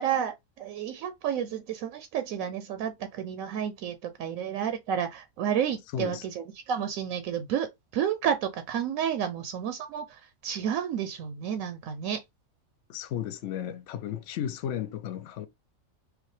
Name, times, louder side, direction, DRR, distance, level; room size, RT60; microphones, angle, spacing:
voice 1, 0.0-7.7 7.9-12.2, right 8 dB, 80° right, 1.0 m, -31 dB
voice 2, 5.9-6.2 12.9-15.5, left 10 dB, 65° left, 0.9 m, -34 dB
4.9 x 2.3 x 3.1 m
omnidirectional pair, 1.4 m